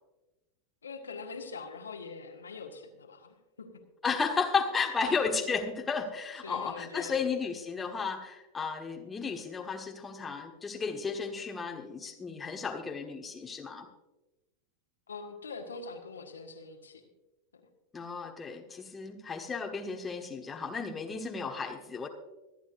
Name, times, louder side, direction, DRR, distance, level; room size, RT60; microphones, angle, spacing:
voice 1, 0.8-3.7 5.0-5.2 6.4-7.3 15.1-17.0 17.5-17.6, left 4 dB, 75° left, 3 dB, 1.6 m, -43 dB
voice 2, 4.0-13.9 17.9-22.1, left 5 dB, 15° left, 3 dB, 1.4 m, -33 dB
25.0 x 10.0 x 2.6 m, 1.0 s
figure-of-eight pair, 85°, 0 cm